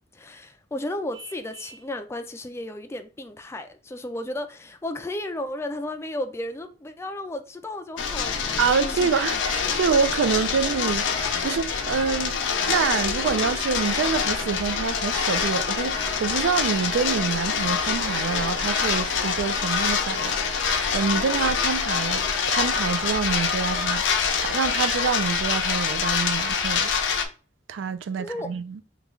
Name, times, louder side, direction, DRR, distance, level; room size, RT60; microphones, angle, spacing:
voice 1, 0.1-9.1 28.2-28.5, left 1 dB, 15° left, 0.3 m, -34 dB
Vehicle horn car horn honking, 1.1-1.9, right 5 dB, 20° right, 1.0 m, -47 dB
sound 1, 8.0-27.3, left 6 dB, 80° left, 0.5 m, -25 dB
voice 2, 8.6-12.4 12.7-26.9 27.7-28.8, right 6 dB, 85° right, 0.3 m, -26 dB
3.1 x 2.3 x 3.6 m
head